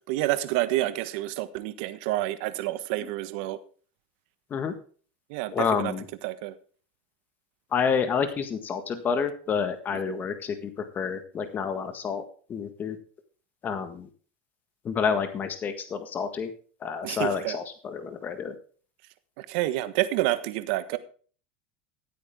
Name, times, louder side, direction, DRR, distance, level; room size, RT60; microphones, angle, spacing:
voice 1, 0.1-3.6 5.3-5.9 6.2-6.5 10.1-10.2 17.0-17.6 19.4-21.0, right 16 dB, 65° right, 13 dB, 1.3 m, -28 dB
voice 2, 5.5-6.1 7.7-12.2 12.5-13.0 13.6-14.1 14.9-16.5 16.8-18.5, left 6 dB, 30° left, 9 dB, 1.6 m, -29 dB
14.5 x 8.7 x 3.6 m, 0.42 s
supercardioid pair, 110°, 6 cm